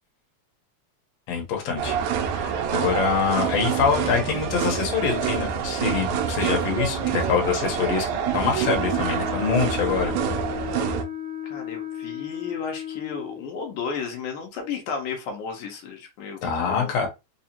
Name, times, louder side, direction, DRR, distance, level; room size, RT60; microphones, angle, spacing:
voice 1, 1.3-10.1 16.4-17.1, left 5 dB, 65° left, 2.0 m, -25 dB
sound 1, 1.8-11.0, right 7 dB, 80° right, 1.9 m, -26 dB
Wind instrument woodwind instrument, 8.6-13.5, left 10 dB, 35° left, 1.0 m, -34 dB
voice 2, 11.4-17.0, left 5 dB, 80° left, 2.2 m, -33 dB
5.1 x 2.4 x 2.8 m
omnidirectional pair, 3.5 m